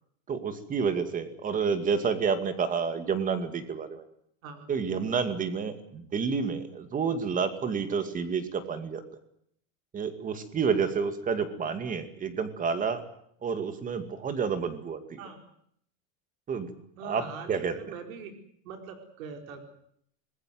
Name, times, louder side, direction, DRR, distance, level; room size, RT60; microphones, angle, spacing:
voice 1, 0.3-4.0 4.7-9.0 9.9-13.0 13.4-15.2 16.5-16.7 17.0-17.8, right 6 dB, 20° right, 10 dB, 2.4 m, -29 dB
voice 2, 17.0-18.3 18.6-19.6, right 6 dB, 80° right, 6 dB, 4.8 m, -42 dB
26.5 x 21.0 x 7.8 m, 0.69 s
supercardioid pair, 165°, 40 cm